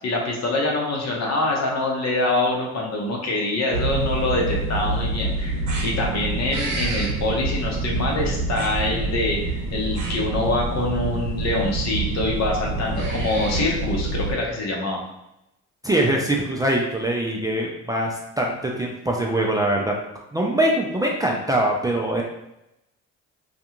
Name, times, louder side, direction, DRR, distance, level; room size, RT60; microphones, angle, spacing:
voice 1, 0.0-5.6 5.8-15.0, left 2 dB, 60° left, -1 dB, 0.8 m, -25 dB
sound 1, 3.7-14.3, right 3 dB, 80° right, 0.8 m, -27 dB
voice 2, 15.8-19.9 20.3-22.2, right 1 dB, 15° right, -2 dB, 0.3 m, -23 dB
2.5 x 2.3 x 2.9 m, 0.88 s
cardioid pair, 90°, 30 cm